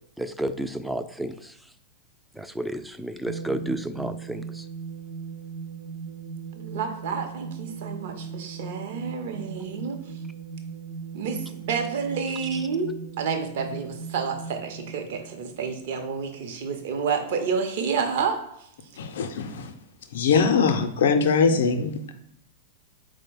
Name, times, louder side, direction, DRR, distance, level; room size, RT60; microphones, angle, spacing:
voice 1, 0.2-1.6 2.3-4.7 12.5-12.6, right 1 dB, ahead, 10 dB, 0.3 m, -31 dB
sound 1, 3.3-16.1, right 5 dB, 85° right, 0.6 m, -38 dB
voice 2, 6.5-10.0 11.1-12.9 13.2-18.7, right 5 dB, 55° right, 5 dB, 0.7 m, -29 dB
voice 3, 19.0-19.7 20.1-22.1, left 5 dB, 60° left, 7 dB, 0.5 m, -22 dB
4.4 x 2.1 x 4.6 m, 0.76 s
figure-of-eight pair, 95°, 0 cm